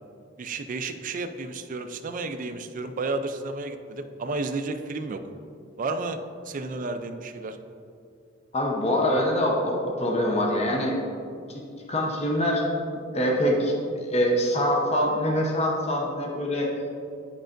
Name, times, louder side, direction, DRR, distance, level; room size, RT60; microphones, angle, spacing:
voice 1, 0.4-5.2 5.8-7.6, right 3 dB, 45° right, 8 dB, 0.4 m, -32 dB
voice 2, 8.5-10.9 11.5-11.6 11.9-12.7 13.1-16.7, equal, 35° left, -1 dB, 0.8 m, -24 dB
9.0 x 5.4 x 2.5 m, 2.4 s
head